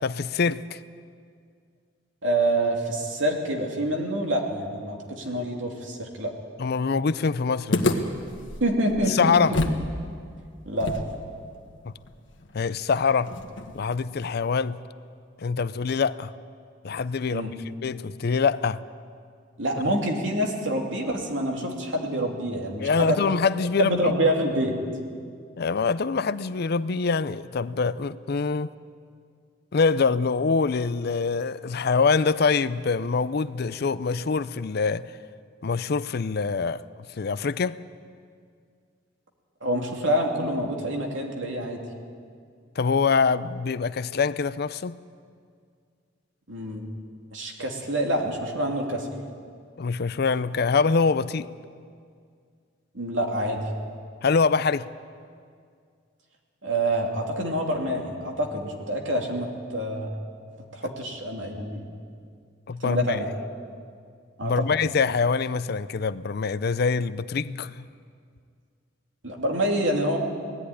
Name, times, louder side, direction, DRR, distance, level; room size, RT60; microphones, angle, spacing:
voice 1, 0.0-0.8 6.6-8.0 9.1-9.6 11.8-11.9 12.5-13.3 13.7-14.8 15.4-16.3 16.8-17.5 17.8-18.8 22.8-24.0 25.6-28.7 29.7-35.1 35.6-36.8 37.2-37.8 42.8-45.0 49.8-51.5 54.2-54.9 62.7-63.2 64.4-67.9, left 5 dB, 55° left, 0.5 m, -24 dB
voice 2, 2.2-6.3 8.6-9.3 10.7-10.9 17.3-17.5 19.6-23.2 23.8-24.7 39.6-41.8 46.5-46.9 47.3-49.1 52.9-53.7 56.6-60.1 60.7-61.8 62.8-63.3 64.4-64.7 69.2-70.2, right 1 dB, 80° right, 2.7 m, -26 dB
sound 1, 7.7-9.9 10.1-10.2 10.8-13.9, left 2 dB, 75° left, 1.5 m, -30 dB
19.0 x 14.0 x 9.9 m
head